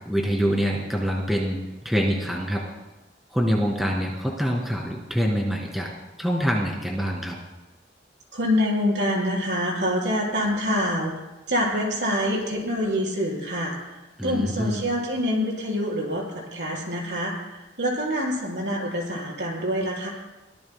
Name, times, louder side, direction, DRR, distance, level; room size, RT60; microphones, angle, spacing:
voice 1, 0.0-1.6 1.9-2.6 3.3-5.9 6.2-7.4 14.2-14.8, equal, ahead, -1 dB, 1.9 m, -25 dB
voice 2, 8.3-11.1 11.5-20.1, equal, 75° right, -2 dB, 4.0 m, -26 dB
22.5 x 17.0 x 2.2 m, 1.1 s
head